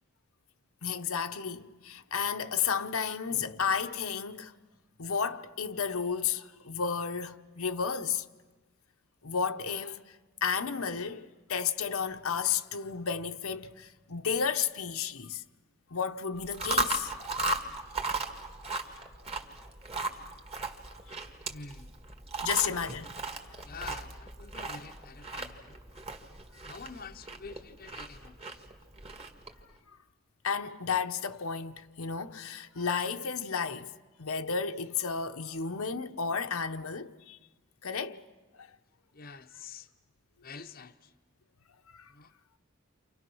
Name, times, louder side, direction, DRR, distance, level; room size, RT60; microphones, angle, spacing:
voice 1, 0.8-4.5 5.0-8.2 9.2-15.4 15.9-17.1 22.4-23.1 30.4-33.9 34.2-37.4 37.8-38.2 38.6-38.7 41.9-42.1, left 6 dB, 75° left, 1.0 m, -32 dB
Chewing mastication, 16.4-29.6, right 2 dB, 25° right, 1.8 m, -36 dB
voice 2, 21.4-22.0 22.6-22.9 23.6-25.8 26.6-28.6 39.1-39.9 40.4-41.1 42.1-42.4, left 5 dB, 40° left, 0.8 m, -47 dB
30.0 x 27.0 x 6.2 m
head